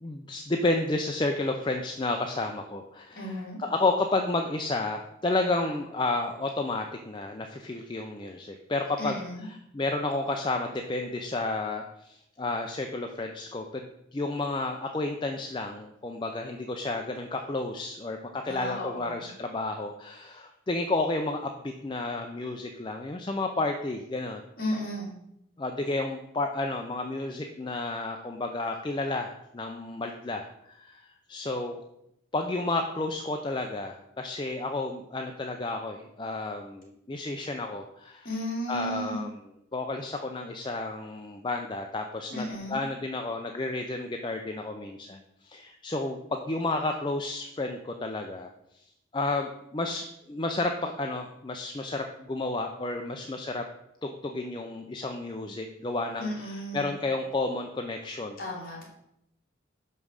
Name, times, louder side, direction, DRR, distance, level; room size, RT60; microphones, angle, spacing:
voice 1, 0.0-24.4 25.6-31.0 31.3-31.8 32.3-38.3 38.7-39.3 39.7-45.2 45.4-48.5 48.7-48.8 49.1-53.6 54.0-58.4, left 2 dB, 25° left, 3 dB, 0.5 m, -31 dB
voice 2, 3.2-3.6 9.0-9.5 18.5-19.3 24.6-25.1 38.2-39.3 42.3-42.8 56.2-56.9 58.4-58.9, equal, 45° left, -4 dB, 2.7 m, -34 dB
6.1 x 5.4 x 6.4 m, 0.80 s
head